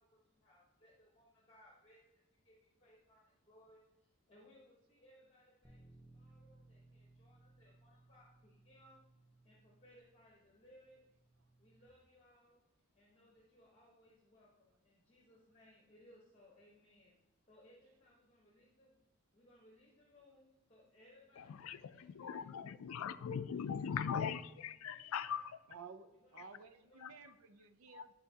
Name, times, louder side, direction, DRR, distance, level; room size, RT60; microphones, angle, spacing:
voice 1, 0.0-9.0 9.4-11.0 11.6-12.6 12.9-17.2 17.5-19.0 19.3-22.5 23.5-24.1 24.6-25.5 26.2-26.5 26.8-27.1, left 1 dB, 25° left, -4 dB, 1.1 m, -66 dB
Bass guitar, 5.6-11.9, right 2 dB, 5° left, 0.7 m, -65 dB
voice 2, 21.4-25.5 26.4-26.5 27.0-27.1 27.9-28.0, left 7 dB, 85° left, 13 dB, 0.4 m, -40 dB
voice 3, 25.7-28.1, right 5 dB, 85° right, 8 dB, 0.5 m, -55 dB
11.0 x 4.2 x 2.8 m, 0.99 s
head